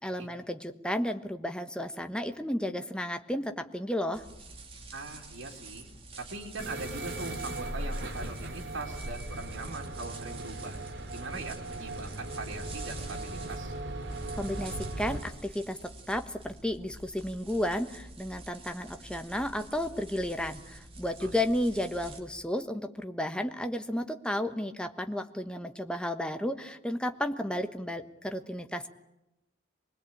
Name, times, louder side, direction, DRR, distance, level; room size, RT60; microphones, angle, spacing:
voice 1, 0.0-4.2 14.3-28.9, left 1 dB, 5° left, 6 dB, 1.2 m, -33 dB
sound 1, 4.1-22.2, right 3 dB, 30° right, 2.8 m, -48 dB
voice 2, 4.9-5.9 6.2-10.8 11.1-13.8 21.2-21.3, right 2 dB, 90° right, -2 dB, 3.1 m, -41 dB
sound 2, 6.6-15.2, right 1 dB, 65° right, 2.8 m, -38 dB
24.5 x 20.5 x 8.8 m, 0.92 s
head